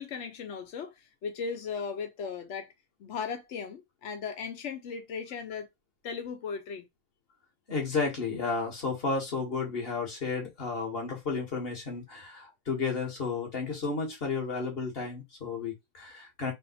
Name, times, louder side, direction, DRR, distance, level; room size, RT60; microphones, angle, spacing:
voice 1, 0.0-2.7 3.0-5.7 6.0-6.9, left 6 dB, 75° left, 0.6 m, -37 dB
voice 2, 7.7-16.5, left 4 dB, 30° left, 1.6 m, -32 dB
3.5 x 2.6 x 4.2 m
omnidirectional pair, 2.1 m